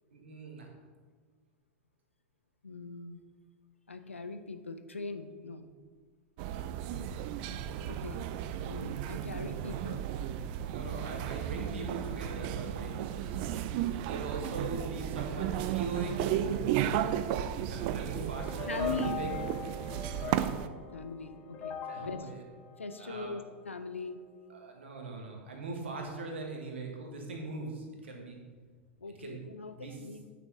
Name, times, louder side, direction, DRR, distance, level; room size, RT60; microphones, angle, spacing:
voice 1, 0.1-0.7 6.8-7.2 10.7-13.5 14.1-17.1 17.7-19.5 20.2-20.5 21.8-22.5 23.0-23.3 24.5-28.4 29.1-29.4 29.8-30.1, right 3 dB, 70° right, 1 dB, 1.4 m, -41 dB
voice 2, 2.6-3.2 3.9-5.7 7.9-8.2 8.6-10.1 18.7-19.2 20.5-20.6 20.9-22.2 22.8-24.2 29.0-30.2, left 3 dB, 80° left, 9 dB, 0.5 m, -41 dB
sound 1, 6.4-20.7, right 10 dB, 45° right, 0.4 m, -34 dB
sound 2, 18.4-23.7, left 6 dB, 35° left, 0.9 m, -41 dB
9.1 x 6.0 x 2.9 m, 1.5 s
figure-of-eight pair, 90°, 7 cm